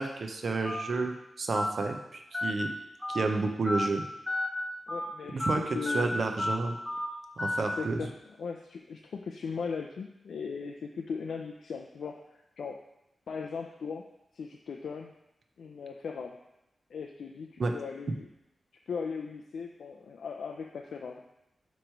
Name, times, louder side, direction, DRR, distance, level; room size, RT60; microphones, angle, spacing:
voice 1, 0.0-2.7 3.1-4.0 5.3-6.8 7.4-8.0 17.6-17.7 18.1-18.2, right 3 dB, 50° right, 4 dB, 0.6 m, -30 dB
Telephone, 0.6-0.8 1.5-1.7 2.3-2.5 3.0-3.2 3.7-3.9 4.3-4.5 4.9-5.0 5.4-5.6 5.9-6.0 6.4-6.6 6.9-7.1 7.4-7.6, left 1 dB, 10° left, 1.0 m, -31 dB
voice 2, 4.9-5.4 5.7-6.1 7.8-12.8 13.3-14.1 14.3-15.1 15.6-16.4 16.9-18.3 18.9-21.2, left 5 dB, 85° left, 2 dB, 0.4 m, -38 dB
8.9 x 3.1 x 4.5 m, 0.85 s
wide cardioid pair, 145°, 0 cm